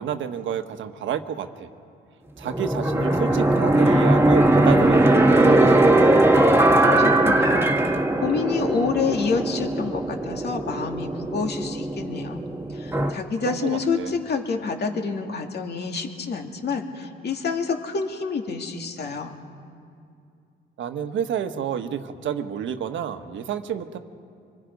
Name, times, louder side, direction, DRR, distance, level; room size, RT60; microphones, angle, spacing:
voice 1, 0.0-1.7 2.4-6.0 13.4-14.1 20.8-24.0, right 8 dB, 75° right, 8 dB, 1.4 m, -30 dB
sound 1, 2.5-13.1, right 1 dB, 10° right, 1.8 m, -19 dB
voice 2, 6.9-12.4 12.7-19.4, left 5 dB, 55° left, 3 dB, 2.5 m, -28 dB
26.0 x 23.5 x 5.3 m, 2.4 s
cardioid pair, 90°, 20 cm